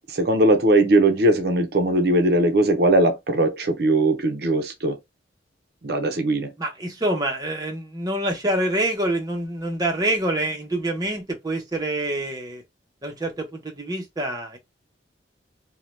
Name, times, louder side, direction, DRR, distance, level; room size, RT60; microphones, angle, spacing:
voice 1, 0.1-5.0 5.8-6.5, right 1 dB, 55° right, 0.5 m, -19 dB
voice 2, 6.6-12.6 13.0-14.6, right 1 dB, 20° right, 0.7 m, -26 dB
2.7 x 2.1 x 3.1 m
head